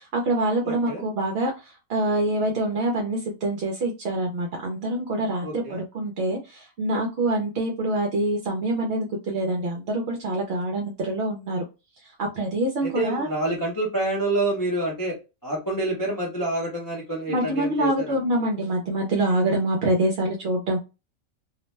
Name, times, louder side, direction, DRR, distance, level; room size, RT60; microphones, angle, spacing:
voice 1, 0.0-11.6 12.2-13.3 17.3-20.8, right 1 dB, 60° right, 0 dB, 0.7 m, -25 dB
voice 2, 0.6-1.0 5.4-5.8 12.8-15.1 15.4-18.1, right 1 dB, 25° left, -3 dB, 0.5 m, -27 dB
2.5 x 2.1 x 3.1 m, 0.28 s
omnidirectional pair, 1.4 m